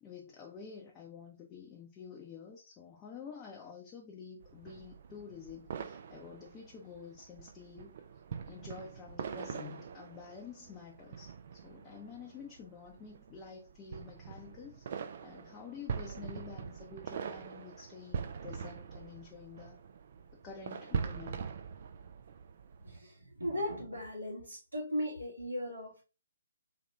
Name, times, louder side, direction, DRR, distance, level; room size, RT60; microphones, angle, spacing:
voice 1, 0.0-7.9 8.5-19.8 20.3-21.4, left 6 dB, 20° left, 0.7 m, -49 dB
sound 1, 4.4-23.0, right 7 dB, 45° right, 0.4 m, -43 dB
voice 2, 22.8-26.0, equal, 80° right, 2.0 m, -37 dB
3.9 x 2.8 x 3.3 m
figure-of-eight pair, 135°, 0 cm